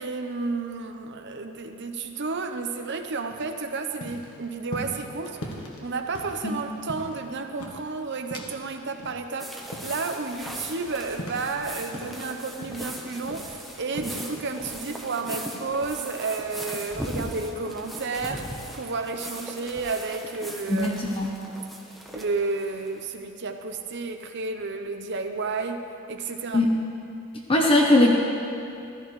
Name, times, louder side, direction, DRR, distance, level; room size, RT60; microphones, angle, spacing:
voice 1, 0.0-5.4 5.8-21.0 22.1-26.6, right 3 dB, 55° right, 5 dB, 0.8 m, -31 dB
sound 1, 3.3-8.7 9.0-12.3 12.6-14.3 14.7-14.9, equal, 85° left, 1.4 m, -40 dB
sound 2, 9.4-23.0, equal, ahead, 1.0 m, -39 dB
voice 2, 20.7-21.3 26.5-26.7 27.5-28.1, left 1 dB, 25° left, 0 dB, 0.9 m, -20 dB
15.0 x 13.5 x 3.2 m, 2.6 s
head